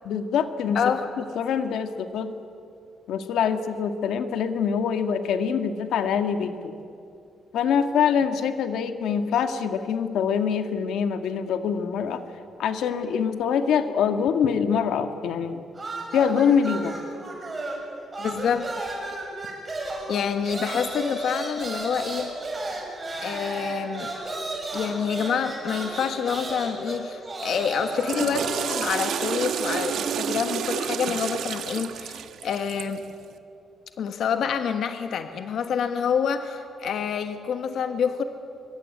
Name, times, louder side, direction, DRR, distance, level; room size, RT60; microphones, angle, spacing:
voice 1, 0.0-0.8 1.3-2.3 3.1-6.7 7.5-12.2 12.6-15.6 16.1-17.0, left 7 dB, 80° left, 8 dB, 1.7 m, -24 dB
voice 2, 0.7-1.1 18.2-18.7 19.1-19.2 20.1-22.3 23.2-24.1 24.7-33.0 34.0-38.2, left 7 dB, 60° left, 7 dB, 1.4 m, -27 dB
sound 1, 15.7-17.9 18.1-30.1, right 2 dB, 20° right, 6.6 m, -34 dB
Water / Toilet flush, 27.8-33.0, right 8 dB, 65° right, 1.3 m, -30 dB
25.0 x 23.5 x 9.9 m, 2.5 s
cardioid pair, 155°, 0 cm